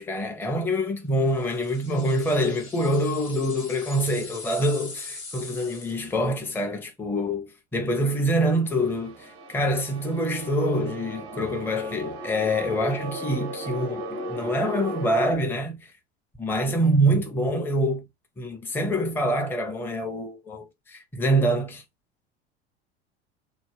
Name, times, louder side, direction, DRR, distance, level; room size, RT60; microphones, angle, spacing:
voice 1, 0.0-15.9 16.4-18.0 18.4-21.8, equal, 5° left, 0.7 m, -25 dB
sound 1, 1.3-6.2, left 3 dB, 85° left, 1.0 m, -42 dB
sound 2, 8.7-15.4, right 1 dB, 70° right, 0.7 m, -36 dB
3.4 x 2.2 x 3.1 m
figure-of-eight pair, 75°, 32 cm